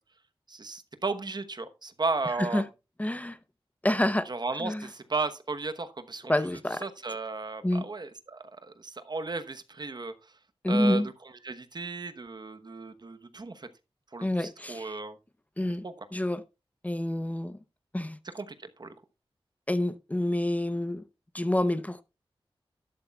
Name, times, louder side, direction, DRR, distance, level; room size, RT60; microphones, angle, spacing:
voice 1, 0.5-2.6 4.3-6.3 6.8-10.1 10.7-11.0 11.4-13.7 14.1-15.2 15.8-15.9 18.3-18.9, right 3 dB, 50° right, 1.0 m, -34 dB
voice 2, 3.0-3.4 3.8-4.3 4.6-4.9 6.3-6.9 7.6-7.9 10.6-11.1 14.2-14.9 15.6-15.8 16.1-16.4 16.8-17.6 17.9-18.2 19.7-21.0 21.3-22.0, left 1 dB, 15° left, 0.7 m, -28 dB
12.0 x 11.5 x 2.3 m
wide cardioid pair, 85°, 10 cm